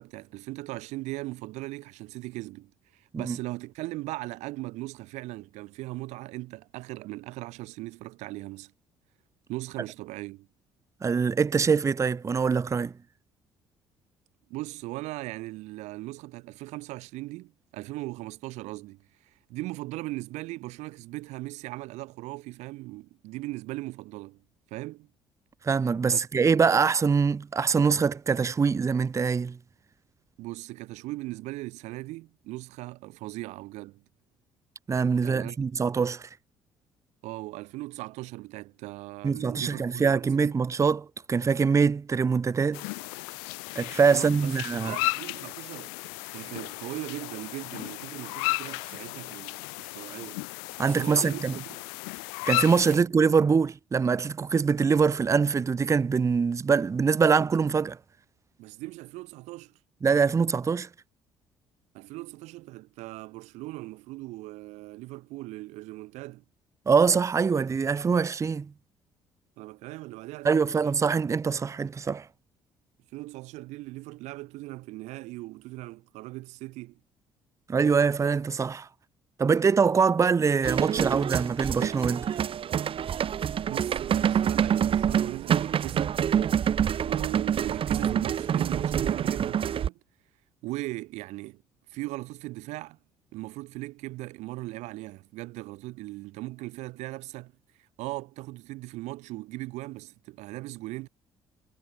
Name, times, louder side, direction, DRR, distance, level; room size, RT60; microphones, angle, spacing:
voice 1, 0.0-8.7 9.5-10.5 14.5-24.4 24.7-25.1 26.0-26.2 30.4-34.0 35.2-35.6 37.2-40.5 44.1-45.9 46.3-50.4 50.8-51.8 52.9-53.0 58.6-59.8 61.9-66.4 69.6-71.0 73.1-77.0 83.7-86.2 87.0-90.0 90.6-91.6 91.9-93.0 93.3-97.5 97.8-101.1, right 20 dB, 60° right, 5.9 m, -39 dB
voice 2, 11.0-12.9 25.6-29.6 34.9-36.3 39.2-42.9 43.8-44.9 50.8-51.5 52.5-58.0 60.0-60.9 66.9-68.7 70.4-72.3 77.7-78.9 79.4-82.3, right 5 dB, 25° right, 0.6 m, -24 dB
sound 1, 42.7-53.0, left 40 dB or more, 65° left, 0.8 m, -34 dB
sound 2, 80.6-89.9, right 9 dB, 45° right, 2.1 m, -26 dB
figure-of-eight pair, 50°, 13 cm